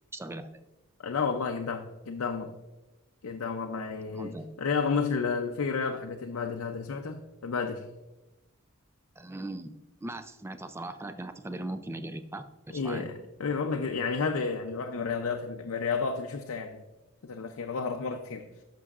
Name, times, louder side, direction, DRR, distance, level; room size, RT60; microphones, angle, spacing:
voice 1, 0.1-0.5 4.1-4.5 9.2-13.1, right 2 dB, 10° right, 0.4 m, -39 dB
voice 2, 1.0-2.5 3.2-7.9 12.7-16.8 17.2-18.5, left 5 dB, 80° left, 0.5 m, -31 dB
11.0 x 6.1 x 2.4 m
head